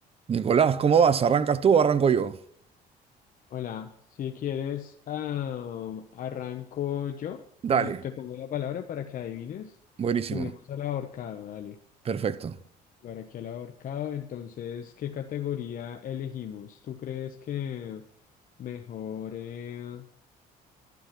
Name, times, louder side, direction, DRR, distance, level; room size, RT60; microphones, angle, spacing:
voice 1, 0.3-2.4 7.6-8.0 10.0-10.5 12.0-12.6, right 7 dB, 35° right, 0.8 m, -22 dB
voice 2, 3.5-3.9 4.2-7.4 7.7-9.8 10.3-11.8 13.0-18.0 18.6-20.0, left 10 dB, 55° left, 1.0 m, -35 dB
12.0 x 11.5 x 6.0 m
cardioid pair, 110°, 17 cm